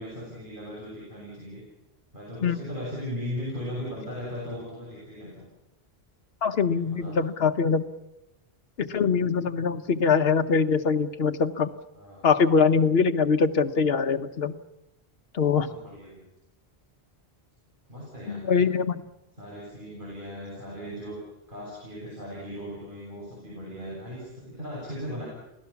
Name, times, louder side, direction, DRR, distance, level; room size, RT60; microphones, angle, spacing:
voice 1, 0.0-1.6 2.1-5.5 6.6-7.2 11.9-12.3 15.6-16.3 17.9-18.6 19.4-21.2 21.5-25.3, equal, 55° right, -5 dB, 7.2 m, -38 dB
voice 2, 6.4-7.8 8.8-11.7 12.2-14.6 15.3-15.7 18.3-19.0, left 5 dB, 70° left, 8 dB, 1.2 m, -23 dB
28.5 x 17.5 x 7.1 m, 0.94 s
omnidirectional pair, 1.0 m